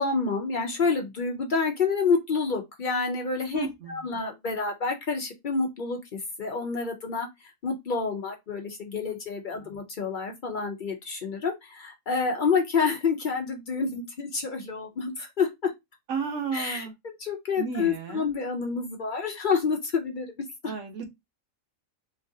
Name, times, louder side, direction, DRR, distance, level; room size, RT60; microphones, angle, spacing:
voice 1, 0.0-7.3 7.6-15.7 16.5-20.3 20.6-20.7, left 5 dB, 55° left, 0.6 m, -28 dB
voice 2, 3.5-4.0 9.6-9.7 16.1-16.9 17.6-18.2 20.6-21.1, right 5 dB, 65° right, 1.2 m, -33 dB
3.1 x 2.4 x 2.7 m
omnidirectional pair, 1.4 m